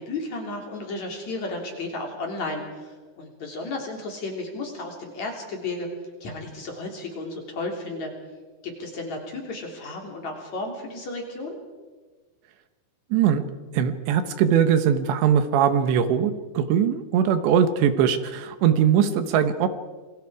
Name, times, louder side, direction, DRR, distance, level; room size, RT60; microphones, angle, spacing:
voice 1, 0.0-5.9 6.2-8.1 8.6-11.6, left 2 dB, 40° left, 1 dB, 4.0 m, -33 dB
voice 2, 13.1-13.4 13.7-19.7, right 8 dB, 75° right, 10 dB, 3.3 m, -21 dB
27.5 x 24.0 x 4.8 m, 1.3 s
omnidirectional pair, 5.2 m